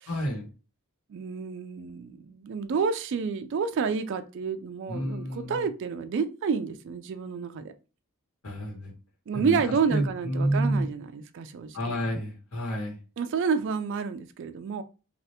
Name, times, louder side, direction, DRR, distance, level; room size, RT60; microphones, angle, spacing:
voice 1, 0.1-0.5 4.9-5.7 8.4-8.9 9.3-9.6 9.9-10.9 11.7-13.0, right 1 dB, 70° left, 1.2 m, -29 dB
voice 2, 1.1-7.7 9.3-11.8 13.2-14.8, right 5 dB, 55° right, 0.3 m, -29 dB
3.2 x 2.4 x 2.8 m
head